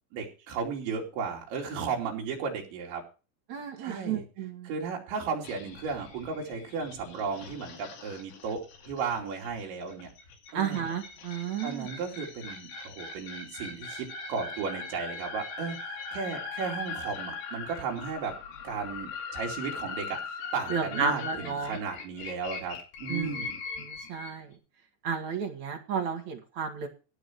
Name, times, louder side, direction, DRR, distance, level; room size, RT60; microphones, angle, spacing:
voice 1, 0.1-3.0 3.8-4.2 4.7-10.1 10.5-10.8 11.6-15.8 16.1-18.4 18.6-23.6, right 5 dB, 80° right, 0 dB, 5.2 m, -35 dB
voice 2, 3.5-4.7 10.5-11.9 20.7-21.8 23.1-23.4 23.8-24.5 25.0-26.9, right 6 dB, 50° right, 2 dB, 2.6 m, -32 dB
sound 1, 5.4-24.4, left 5 dB, 85° left, 5.0 m, -40 dB
17.5 x 7.7 x 4.6 m, 0.33 s
omnidirectional pair, 5.2 m